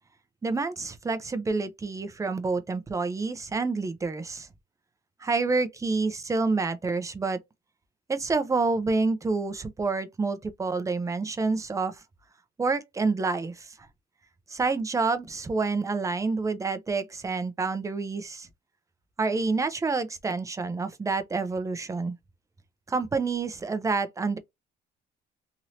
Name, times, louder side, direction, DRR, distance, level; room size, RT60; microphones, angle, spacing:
voice 1, 0.4-4.5 5.2-7.4 8.1-12.0 12.6-13.7 14.5-18.5 19.2-22.2 22.9-24.4, right 4 dB, 20° right, 0.6 m, -28 dB
3.1 x 2.7 x 2.8 m
cardioid pair, 110°, 17 cm